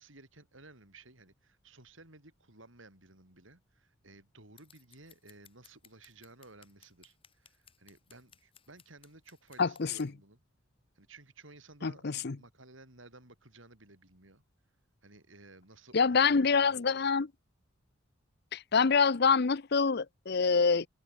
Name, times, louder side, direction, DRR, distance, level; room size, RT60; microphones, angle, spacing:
voice 1, 0.0-10.4 11.0-14.4 15.0-17.2, right 2 dB, 75° right, 7.5 m, -56 dB
Scissors, 4.6-10.1, left 8 dB, 25° left, 6.1 m, -61 dB
voice 2, 9.6-10.1 11.8-12.4 15.9-17.3 18.5-20.9, left 5 dB, 55° left, 0.7 m, -26 dB
head